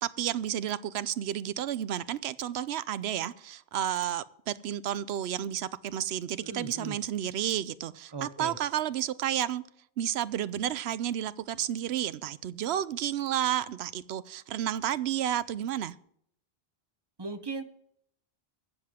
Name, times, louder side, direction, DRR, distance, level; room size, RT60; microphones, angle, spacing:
voice 1, 0.0-9.6 10.0-15.9, right 10 dB, 85° right, 16 dB, 0.9 m, -31 dB
voice 2, 6.4-7.0 8.1-8.6 17.2-17.6, right 3 dB, 25° right, 11 dB, 0.8 m, -37 dB
22.5 x 7.7 x 3.6 m, 0.70 s
omnidirectional pair, 1.1 m